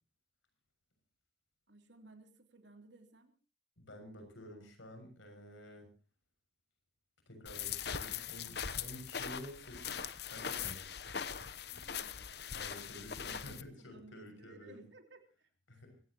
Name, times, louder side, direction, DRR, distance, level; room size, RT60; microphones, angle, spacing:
voice 1, 1.7-3.3 11.7-12.3 12.8-15.5, right 2 dB, 70° right, 5 dB, 3.1 m, -59 dB
voice 2, 3.8-5.9 7.3-10.9 12.5-14.8 15.7-16.0, equal, 90° left, 6 dB, 6.7 m, -51 dB
sound 1, 7.5-13.6, left 7 dB, 55° left, 0.9 m, -41 dB
24.5 x 16.5 x 3.0 m, 0.34 s
head